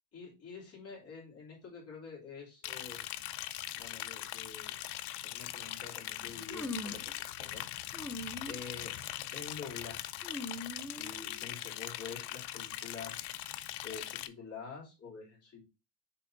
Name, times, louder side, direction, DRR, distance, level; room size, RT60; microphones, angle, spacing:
voice 1, 0.1-3.0 3.7-4.8 5.2-8.9 9.3-10.1 10.9-13.2 13.8-15.6, left 5 dB, 35° left, -3 dB, 2.9 m, -47 dB
Liquid, 2.6-14.3, left 14 dB, 70° left, 0.5 m, -41 dB
sound 1, 6.5-7.1 7.9-8.6 9.0-9.4 10.2-11.4, left 1 dB, 5° left, 0.5 m, -42 dB
6.7 x 5.7 x 2.7 m, 0.28 s
cardioid pair, 175°, 42 cm